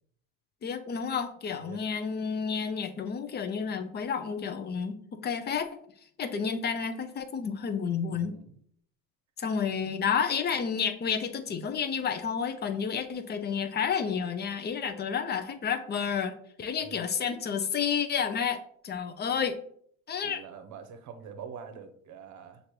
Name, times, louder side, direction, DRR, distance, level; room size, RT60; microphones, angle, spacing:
voice 1, 0.6-5.8 6.2-8.3 9.4-19.6 20.1-20.4, left 6 dB, 30° left, 9 dB, 0.6 m, -30 dB
voice 2, 8.1-8.5 16.8-17.1 20.2-22.6, right 6 dB, 55° right, 8 dB, 0.8 m, -45 dB
6.4 x 2.6 x 3.0 m, 0.64 s
supercardioid pair, 95°, 35 cm